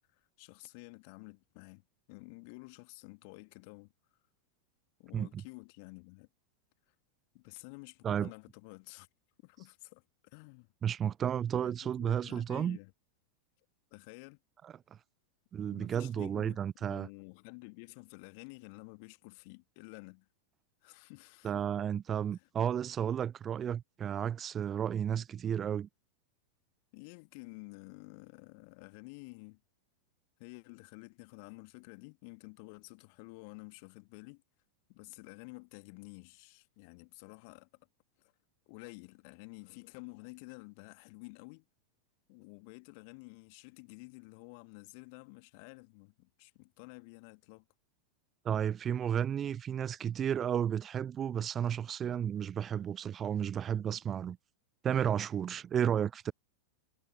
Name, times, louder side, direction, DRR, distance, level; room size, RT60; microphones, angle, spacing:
voice 1, 0.1-3.9 5.0-6.3 7.3-9.1 9.4-10.7 11.6-12.9 13.9-14.4 15.7-20.3 20.8-21.6 22.3-22.5 26.9-29.6 30.4-34.4 34.9-37.9 38.7-41.6 42.3-47.6, left 33 dB, 45° left, 1.8 m, -51 dB
voice 2, 10.8-12.8 14.6-14.7 15.5-17.1 21.4-25.9 48.4-54.4 54.8-56.3, right 9 dB, 25° right, 0.5 m, -32 dB
figure-of-eight pair, 90°, 0 cm